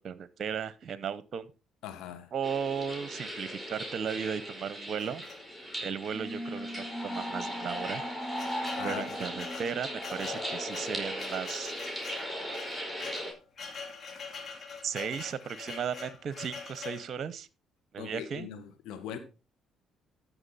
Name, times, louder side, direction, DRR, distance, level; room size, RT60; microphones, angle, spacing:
voice 1, 0.0-1.5 2.3-5.2 5.8-8.0 8.8-11.7 12.5-12.7 14.8-17.5 17.9-18.5, right 7 dB, 55° right, 0.8 m, -36 dB
voice 2, 1.8-2.3 8.7-9.2 18.0-19.2, left 9 dB, 75° left, 1.6 m, -40 dB
sound 1, 2.4-13.3, equal, 10° left, 4.7 m, -38 dB
sound 2, 5.0-5.8 6.6-6.7 7.0-7.1 7.8-17.1, left 5 dB, 50° left, 2.4 m, -44 dB
sound 3, 6.1-11.3, equal, 25° right, 1.1 m, -42 dB
14.0 x 5.9 x 4.1 m
hypercardioid pair, 55°, 0 cm